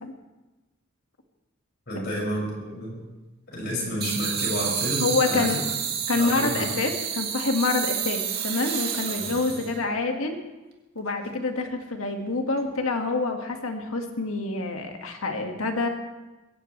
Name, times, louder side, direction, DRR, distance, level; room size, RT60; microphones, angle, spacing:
voice 1, 1.9-3.0 3.5-5.6 6.2-6.7 9.1-9.3, equal, 50° left, -3 dB, 6.6 m, -30 dB
sound 1, 4.0-9.8, right 8 dB, 45° right, 2.2 m, -29 dB
voice 2, 5.0-5.6 6.1-10.4 11.0-15.9, left 3 dB, 85° left, 3 dB, 1.9 m, -27 dB
22.0 x 17.0 x 3.3 m, 1.1 s
head